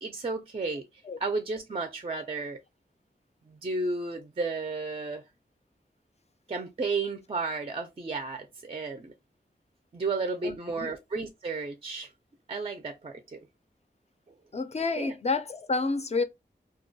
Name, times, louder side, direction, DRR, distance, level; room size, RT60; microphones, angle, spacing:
voice 1, 0.0-0.9 1.2-2.6 3.5-5.2 6.5-9.1 9.9-12.1 12.5-13.5 15.0-15.1, right 3 dB, 30° right, 0.4 m, -33 dB
voice 2, 10.4-10.9 14.5-16.2, left 3 dB, 35° left, 0.4 m, -29 dB
2.2 x 2.1 x 2.6 m
wide cardioid pair, 45°, 19 cm